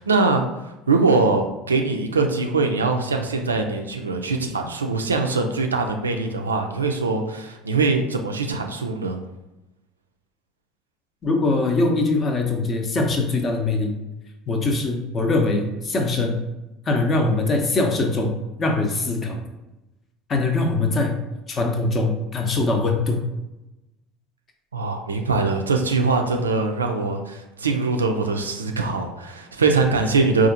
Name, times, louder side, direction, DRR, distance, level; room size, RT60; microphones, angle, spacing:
voice 1, 0.0-9.2 24.7-30.5, right 3 dB, 80° right, 4 dB, 0.3 m, -22 dB
voice 2, 11.2-14.0 14.5-16.4 16.9-18.3 18.6-19.4 20.3-21.2 21.5-23.2, left 2 dB, 30° left, 3 dB, 0.6 m, -22 dB
4.2 x 2.4 x 2.6 m, 0.98 s
figure-of-eight pair, 65°, 0 cm